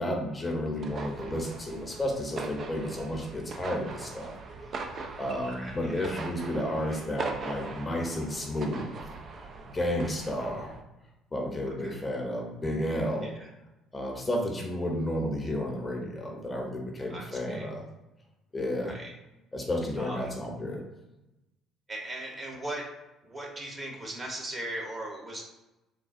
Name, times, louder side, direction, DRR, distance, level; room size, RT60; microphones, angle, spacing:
voice 1, 0.0-4.3 4.9-9.0 9.7-10.8 11.3-13.3 13.9-17.8 18.5-18.9 19.5-20.8, left 1 dB, 25° left, 1 dB, 0.7 m, -32 dB
sound 1, 0.7-10.8, right 3 dB, 50° right, 0.4 m, -40 dB
voice 2, 5.5-6.2 6.8-7.0 10.4-10.5 11.8-12.0 13.2-13.5 17.1-17.7 18.8-19.1 20.0-20.3 21.9-22.8 23.2-25.4, right 1 dB, 30° right, 0 dB, 0.9 m, -39 dB
3.6 x 2.2 x 2.5 m, 0.98 s
hypercardioid pair, 55°, 0 cm